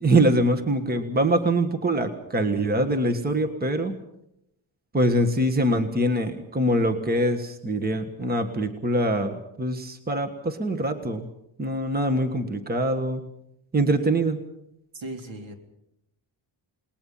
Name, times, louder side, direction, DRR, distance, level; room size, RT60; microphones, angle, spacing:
voice 1, 0.0-4.0 4.9-11.3 11.6-13.2 13.7-14.4, right 1 dB, 20° right, 7 dB, 1.6 m, -24 dB
voice 2, 14.9-15.5, right 1 dB, 65° right, 5 dB, 3.7 m, -37 dB
29.0 x 20.0 x 5.7 m, 0.80 s
wide cardioid pair, 145°, 49 cm